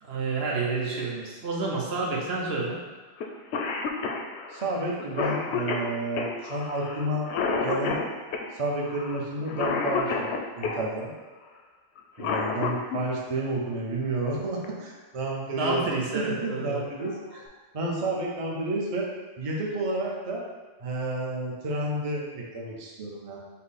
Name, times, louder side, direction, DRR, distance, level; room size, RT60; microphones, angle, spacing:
voice 1, 0.0-2.8 15.6-16.8, right 3 dB, 75° right, -2 dB, 1.0 m, -29 dB
Cough, 3.2-3.3 3.5-10.8 12.0-13.0 14.6-14.7 15.8-16.0 16.5-16.6 17.0-17.5, left 4 dB, 90° left, 0.8 m, -30 dB
voice 2, 4.5-7.3 7.6-8.0 8.6-11.1 12.2-15.8 16.1-17.4 17.7-19.1 19.4-20.4 20.8-23.4, right 2 dB, 40° right, -3 dB, 0.7 m, -30 dB
5.5 x 2.1 x 4.1 m, 1.3 s
omnidirectional pair, 1.1 m